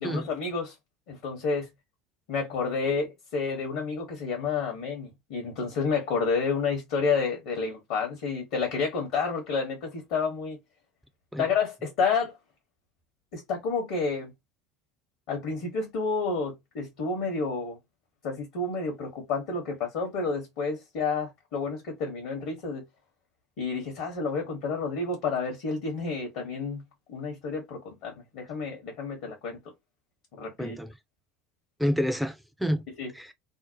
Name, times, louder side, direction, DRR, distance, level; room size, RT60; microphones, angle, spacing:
voice 1, 0.0-0.7 1.1-1.7 2.3-10.6 11.4-12.3 13.3-14.3 15.3-17.8 18.2-22.8 23.6-26.8 27.1-29.6 30.4-30.8 33.0-33.1, left 4 dB, 55° left, 0.9 m, -30 dB
voice 2, 30.6-30.9 31.8-32.8 33.1-33.3, equal, 5° right, 0.5 m, -28 dB
2.7 x 2.0 x 2.7 m
figure-of-eight pair, 65°, 0 cm